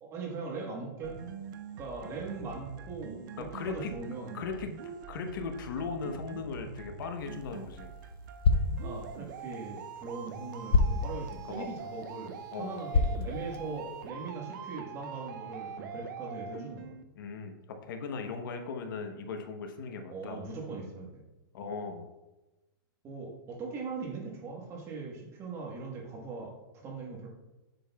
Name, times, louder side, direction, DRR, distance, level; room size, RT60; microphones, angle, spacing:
voice 1, 0.0-1.3 1.8-4.3 8.8-16.9 20.1-21.2 23.0-27.3, right 3 dB, 20° right, -1 dB, 1.3 m, -40 dB
sound 1, 1.0-17.0, right 6 dB, 55° right, 0.5 m, -44 dB
voice 2, 3.4-3.9 4.3-4.7 5.1-7.9 11.5-11.7 12.5-12.7 17.2-17.6 17.9-20.4 21.5-22.1, left 4 dB, 65° left, 5 dB, 0.9 m, -38 dB
sound 2, 7.2-14.1, left 3 dB, 90° left, 0.7 m, -32 dB
7.6 x 6.3 x 2.3 m, 1.1 s
hypercardioid pair, 155°, 12 cm